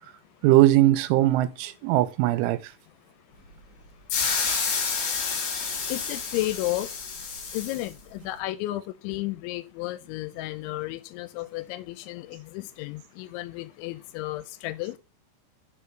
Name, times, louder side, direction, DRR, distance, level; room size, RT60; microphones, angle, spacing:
voice 1, 0.4-2.6, right 15 dB, 85° right, 3.2 m, -20 dB
sound 1, 4.1-7.9, left 5 dB, 60° left, 3.1 m, -29 dB
voice 2, 5.9-6.9 7.5-15.0, left 17 dB, 85° left, 2.9 m, -33 dB
6.8 x 3.7 x 4.5 m
omnidirectional pair, 5.4 m